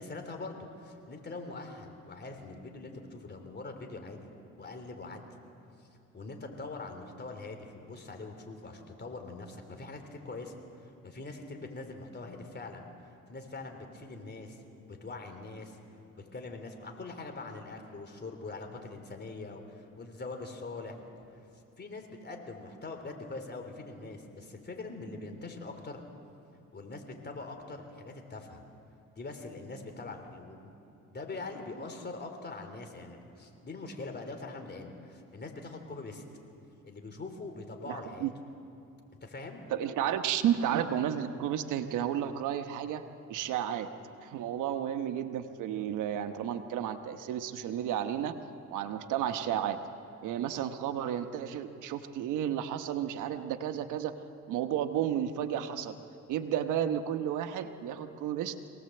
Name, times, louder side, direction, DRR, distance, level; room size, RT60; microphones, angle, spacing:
voice 1, 0.0-4.3 4.6-5.4 5.8-5.9 6.1-10.5 10.8-12.8 13.3-14.6 14.9-15.8 16.2-21.0 21.8-26.0 26.7-28.6 29.1-30.7 31.1-36.2 36.8-38.3 39.2-39.6, left 3 dB, 35° left, 4 dB, 3.4 m, -43 dB
voice 2, 37.9-38.3 39.7-43.0 43.3-43.9 44.2-48.3 48.7-49.8 50.2-54.1 54.5-56.0 56.3-58.5, right 10 dB, 90° right, 9 dB, 1.1 m, -32 dB
24.0 x 18.0 x 7.8 m, 2.7 s
cardioid pair, 90°, 30 cm